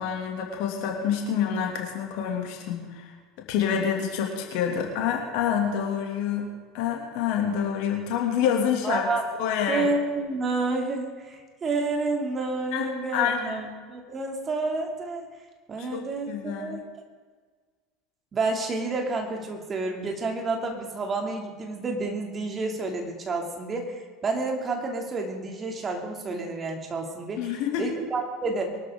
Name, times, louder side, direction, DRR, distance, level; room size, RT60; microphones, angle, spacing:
voice 1, 0.0-3.1 3.5-6.5 6.7-9.1 9.4-9.9 12.7-13.6 15.8-16.8 27.4-27.9, left 8 dB, 60° left, 1 dB, 2.9 m, -27 dB
voice 2, 8.8-9.2 9.7-15.2 15.7-16.8 18.3-28.8, right 3 dB, 30° right, 2 dB, 3.1 m, -30 dB
23.0 x 13.0 x 4.0 m, 1.5 s
figure-of-eight pair, 70°, 0 cm